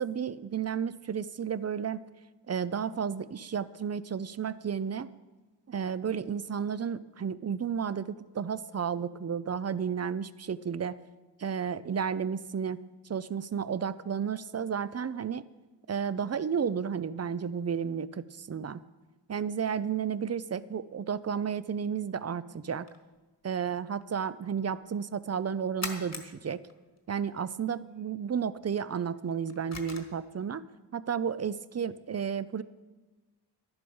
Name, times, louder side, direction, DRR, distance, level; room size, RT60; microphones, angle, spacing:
voice 1, 0.0-2.0 2.5-5.1 5.7-11.0 11.4-12.8 13.1-15.5 15.9-18.8 19.3-22.9 23.4-26.6 27.1-30.6 30.9-32.6, right 7 dB, 40° right, 16 dB, 0.5 m, -32 dB
sound 1, 22.8-23.4 24.0-24.4 24.8-24.9 25.4-27.5 27.9-28.1 28.4-30.5, left 2 dB, 40° left, 1.6 m, -43 dB
13.0 x 11.0 x 5.4 m, 1.2 s
wide cardioid pair, 110°, 41 cm